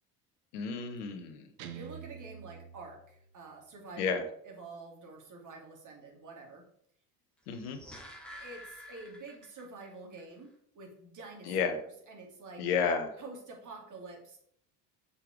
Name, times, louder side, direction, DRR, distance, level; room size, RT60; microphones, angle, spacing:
voice 1, 0.5-1.5 4.0-4.2 7.5-7.8 11.5-11.8 12.6-13.1, left 6 dB, 70° left, 7 dB, 1.3 m, -31 dB
Guitar, 1.6-3.6, right 9 dB, 70° right, 1.1 m, -47 dB
voice 2, 1.7-6.6 8.3-10.5 10.7-11.6 12.1-12.7 13.2-14.4, right 3 dB, 40° right, 1 dB, 2.9 m, -48 dB
sound 1, 7.4-9.9 10.2-10.3, equal, ahead, 3.2 m, -49 dB
6.7 x 5.8 x 5.1 m, 0.68 s
hypercardioid pair, 70°, 48 cm